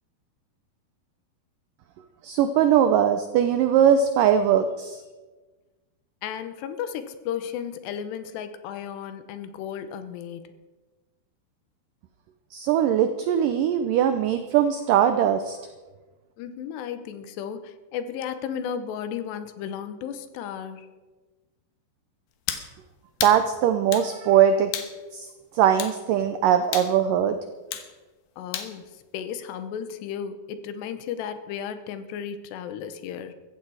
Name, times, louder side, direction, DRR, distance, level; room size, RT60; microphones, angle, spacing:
voice 1, 2.2-5.0 12.5-15.6 23.2-24.7 25.1-25.3 25.5-27.4, right 9 dB, 90° right, 9 dB, 1.9 m, -21 dB
voice 2, 6.2-10.5 16.4-20.9 28.4-33.3, left 8 dB, 90° left, 11 dB, 3.2 m, -34 dB
sound 1, 22.5-22.7 23.2-23.4 23.9-24.1 24.7-24.9 25.8-26.0 26.7-26.9 27.7-27.9 28.5-28.7, left 9 dB, 75° left, 2.9 m, -31 dB
15.0 x 14.5 x 4.8 m, 1.3 s
omnidirectional pair, 4.7 m